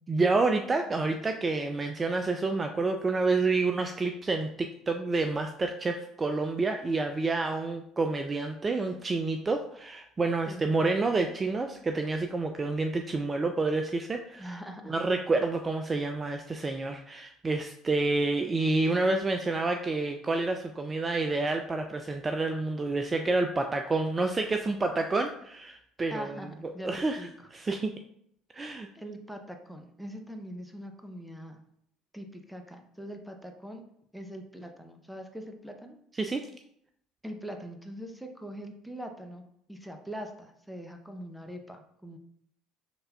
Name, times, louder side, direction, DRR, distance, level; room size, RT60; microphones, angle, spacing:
voice 1, 0.1-14.6 14.9-26.4 26.6-27.3 27.5-27.9 28.5-28.9 36.2-36.5, right 3 dB, 25° right, 5 dB, 0.3 m, -29 dB
voice 2, 14.4-14.9 26.1-26.9 27.2-27.5 28.9-31.6 32.1-33.8 34.1-36.0 37.2-39.4 39.7-42.2, equal, ahead, 4 dB, 0.7 m, -42 dB
5.7 x 3.3 x 2.3 m, 0.71 s
hypercardioid pair, 70°, 0 cm